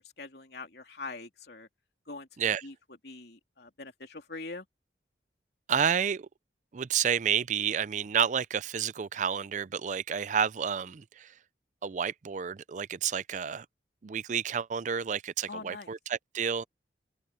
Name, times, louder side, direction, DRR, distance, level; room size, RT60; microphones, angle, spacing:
voice 1, 0.0-1.7 2.1-2.3 2.6-2.7 3.0-4.7 15.5-15.9, left 3 dB, 65° left, 3.0 m, -43 dB
voice 2, 5.7-6.3 6.7-11.3 11.8-13.7 14.0-16.6, right 7 dB, 45° right, 0.4 m, -30 dB
head